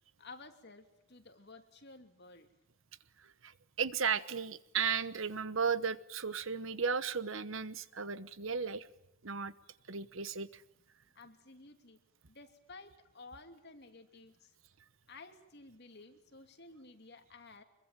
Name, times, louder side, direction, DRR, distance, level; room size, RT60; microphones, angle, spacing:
voice 1, 0.2-2.5 11.1-12.0 12.3-14.5 15.1-17.6, left 3 dB, 55° left, 6 dB, 2.9 m, -54 dB
voice 2, 3.8-8.9 9.2-9.5 9.9-10.6, right 6 dB, 65° right, 15 dB, 1.1 m, -35 dB
25.5 x 22.5 x 9.1 m, 0.79 s
head